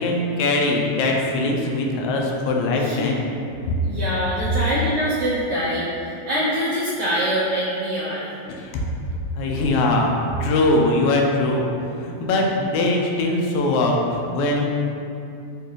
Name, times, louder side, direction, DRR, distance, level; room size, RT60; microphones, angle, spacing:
voice 1, 0.0-3.3 3.7-3.8 8.5-8.7 9.4-10.1 10.4-11.7 12.0-14.6, left 2 dB, 85° left, 0 dB, 1.9 m, -21 dB
voice 2, 2.6-3.1 3.8-8.3, equal, 85° right, -8 dB, 1.3 m, -24 dB
6.8 x 2.4 x 3.1 m, 2.6 s
omnidirectional pair, 3.4 m